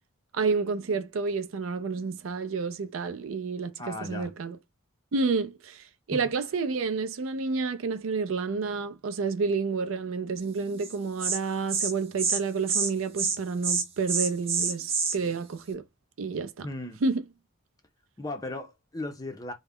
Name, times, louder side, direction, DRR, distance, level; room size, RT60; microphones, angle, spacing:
voice 1, 0.3-4.6 5.1-15.8 16.2-16.7 17.0-17.2, right 4 dB, 80° right, 0.4 m, -30 dB
voice 2, 3.8-4.3 6.1-6.2 16.6-17.0 18.2-19.5, left 2 dB, 20° left, 0.4 m, -36 dB
Insect, 10.8-10.9 11.2-11.4 11.7-11.9 12.2-12.4 12.7-12.9 13.2-13.4 13.6-15.1, right 5 dB, 30° right, 0.5 m, -27 dB
2.3 x 2.1 x 3.4 m
head